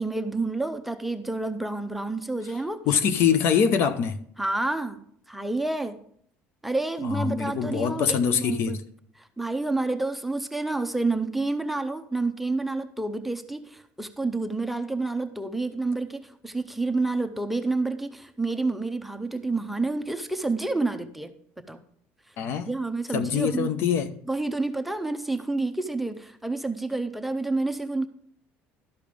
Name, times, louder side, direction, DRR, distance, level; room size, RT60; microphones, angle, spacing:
voice 1, 0.0-2.8 4.4-5.0 5.3-6.0 6.6-8.8 9.2-21.3 21.7-21.8 22.7-23.8 24.3-28.1, right 3 dB, 5° right, 0.6 m, -29 dB
voice 2, 2.9-4.2 7.0-8.8 22.4-22.7 23.1-24.1, left 7 dB, 60° left, 0.7 m, -24 dB
12.0 x 5.2 x 5.1 m
cardioid pair, 130°, 5 cm